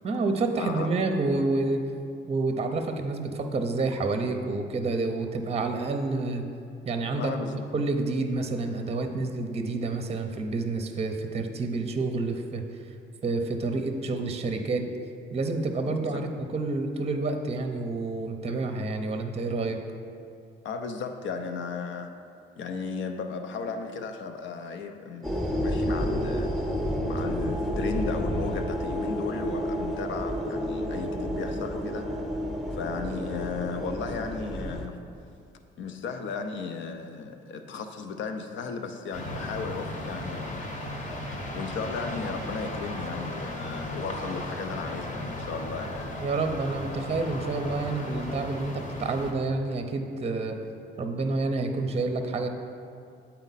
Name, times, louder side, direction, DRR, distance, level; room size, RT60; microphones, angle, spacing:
voice 1, 0.0-1.8 2.3-6.4 6.8-7.4 7.7-12.6 13.2-14.8 15.3-19.8 46.2-50.6 51.0-52.5, right 3 dB, 30° right, 5 dB, 0.6 m, -28 dB
voice 2, 0.6-0.9 7.2-7.6 15.8-16.2 20.6-22.1 22.6-26.5 27.0-32.2 32.7-35.0 35.8-40.7 41.5-46.0, left 5 dB, 70° left, 6 dB, 0.6 m, -35 dB
sound 1, 25.2-34.9, equal, ahead, 0.8 m, -30 dB
sound 2, 39.1-49.3, left 1 dB, 40° left, 1.0 m, -36 dB
8.1 x 4.3 x 4.0 m, 2.4 s
cardioid pair, 90°, 20 cm